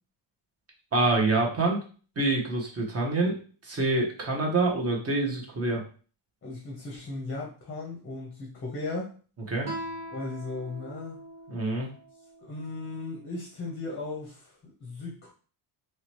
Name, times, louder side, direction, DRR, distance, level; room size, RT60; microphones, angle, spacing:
voice 1, 0.9-1.8 2.2-5.8 9.5-9.7 11.5-11.9, right 2 dB, 30° right, 0 dB, 0.9 m, -26 dB
voice 2, 6.4-9.1 10.1-11.2 12.4-15.3, left 3 dB, 25° left, -1 dB, 0.7 m, -37 dB
Guitar, 9.6-12.9, right 1 dB, 55° right, 1.0 m, -42 dB
3.1 x 2.8 x 3.0 m, 0.39 s
cardioid pair, 140°, 50 cm